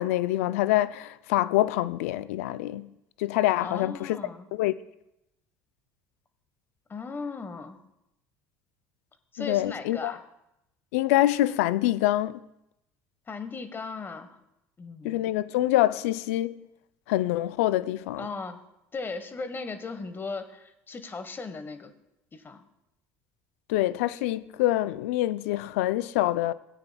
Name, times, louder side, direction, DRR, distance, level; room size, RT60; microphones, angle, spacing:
voice 1, 0.0-2.9 3.2-4.2 4.5-4.7 9.4-10.1 10.9-12.4 15.0-16.6 17.1-18.3 23.7-26.5, left 15 dB, 85° left, 0.4 m, -25 dB
voice 2, 3.6-4.5 6.9-7.8 9.3-10.2 13.3-14.4 14.8-15.2 18.2-18.6 18.9-21.9 22.3-22.6, left 4 dB, 30° left, 1.2 m, -37 dB
17.5 x 8.9 x 2.3 m
supercardioid pair, 80°, 8 cm